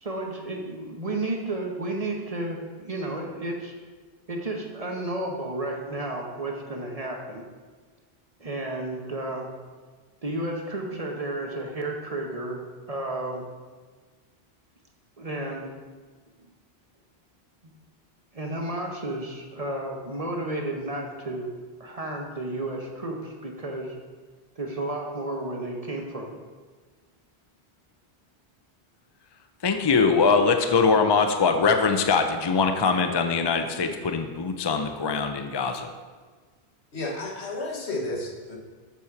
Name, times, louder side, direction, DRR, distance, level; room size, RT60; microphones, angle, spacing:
voice 1, 0.0-3.7 4.3-7.4 8.4-9.5 10.2-12.6 12.9-13.5 15.2-15.7 18.3-21.5 21.8-24.0 24.6-26.4, right 2 dB, 40° right, 1 dB, 0.9 m, -32 dB
voice 2, 29.6-35.9, left 5 dB, 35° left, 6 dB, 0.4 m, -22 dB
voice 3, 36.9-38.6, left 2 dB, 90° left, 0 dB, 1.5 m, -32 dB
7.2 x 4.9 x 5.8 m, 1.4 s
omnidirectional pair, 1.1 m